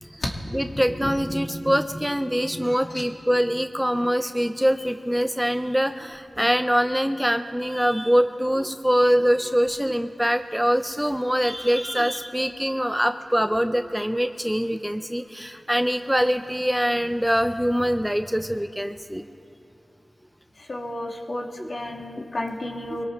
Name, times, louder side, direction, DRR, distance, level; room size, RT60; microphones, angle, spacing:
voice 1, 0.0-19.2 21.6-21.7 22.9-23.0, equal, 5° right, 9 dB, 0.5 m, -24 dB
voice 2, 20.7-23.1, left 1 dB, 60° left, 0 dB, 1.8 m, -31 dB
23.5 x 17.5 x 3.2 m, 2.9 s
cardioid pair, 50°, 0 cm